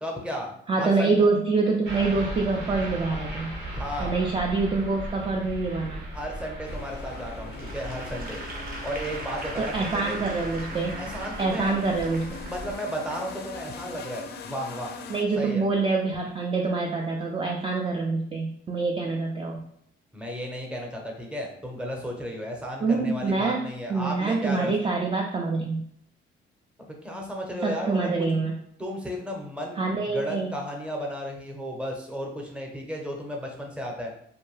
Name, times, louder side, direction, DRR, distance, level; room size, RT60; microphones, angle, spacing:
voice 1, 0.0-1.2 3.7-4.2 6.1-8.4 8.8-10.2 10.9-11.7 12.5-14.9 15.4-15.6 20.1-24.7 27.0-28.1 28.8-29.8 30.1-34.1, equal, 5° right, 0 dB, 0.7 m, -34 dB
voice 2, 0.7-3.5 4.0-6.1 9.6-11.0 11.4-12.4 15.1-19.6 22.8-23.6 23.9-25.8 27.6-28.6 29.8-30.5, right 3 dB, 25° right, 0 dB, 0.4 m, -26 dB
sound 1, 1.8-12.8, right 1 dB, 75° right, 1.0 m, -38 dB
sound 2, 6.6-15.2, left 5 dB, 55° left, 0.4 m, -42 dB
Applause / Crowd, 7.5-13.8, right 2 dB, 50° right, 0.8 m, -40 dB
2.6 x 2.1 x 3.1 m, 0.68 s
cardioid pair, 90°, 20 cm